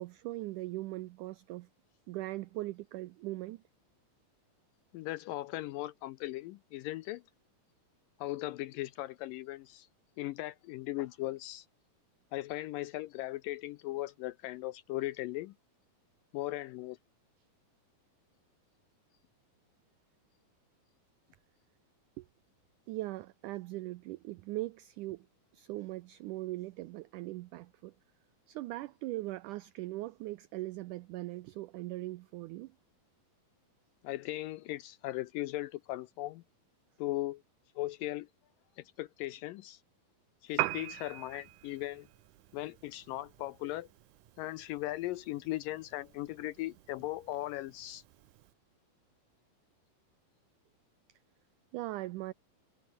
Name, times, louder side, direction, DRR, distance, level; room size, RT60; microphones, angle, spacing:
voice 1, 0.0-1.7 2.1-3.6 22.2-22.3 22.9-25.3 25.5-27.9 28.5-32.7 51.7-52.3, right 18 dB, 85° right, 1.8 m, -40 dB
voice 2, 4.9-7.2 8.2-9.9 10.2-11.7 12.3-15.5 16.3-17.0 34.0-36.4 37.0-37.4 37.8-38.3 38.8-39.8 40.4-42.1 42.5-43.9 44.4-48.0, left 17 dB, 80° left, 2.1 m, -38 dB
Piano, 40.5-48.5, right 15 dB, 70° right, 2.1 m, -43 dB
omnidirectional pair, 4.3 m